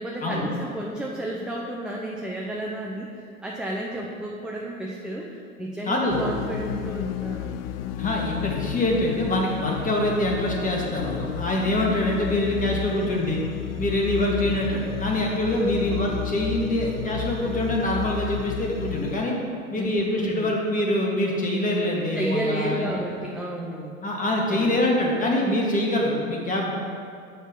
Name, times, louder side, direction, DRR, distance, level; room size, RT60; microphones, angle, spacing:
voice 1, 0.0-7.6 15.6-15.9 19.7-20.5 22.1-24.0 24.5-24.8, right 1 dB, ahead, -3 dB, 0.7 m, -32 dB
voice 2, 5.9-6.3 8.0-13.4 13.8-19.3 19.7-23.0 24.0-26.7, left 1 dB, 20° left, -2 dB, 1.9 m, -25 dB
sound 1, 6.1-19.2, left 11 dB, 45° left, 0.4 m, -32 dB
7.3 x 5.7 x 7.2 m, 2.3 s
figure-of-eight pair, 85°, 42 cm